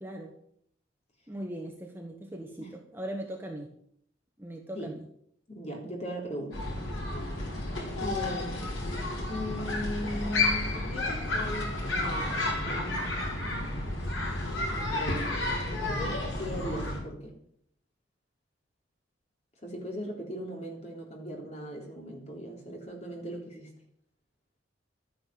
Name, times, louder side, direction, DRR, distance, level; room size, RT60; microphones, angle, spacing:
voice 1, 0.0-0.3 1.3-3.7 4.4-5.0, right 1 dB, 10° right, 1 dB, 1.5 m, -39 dB
voice 2, 5.5-6.7 8.0-8.7 9.3-12.3 12.6-13.2 14.7-15.3 15.8-17.4 19.6-23.7, equal, 35° left, 0 dB, 3.7 m, -38 dB
sound 1, 6.5-17.0, left 2 dB, 75° left, 5.3 m, -31 dB
13.0 x 10.0 x 7.6 m, 0.67 s
head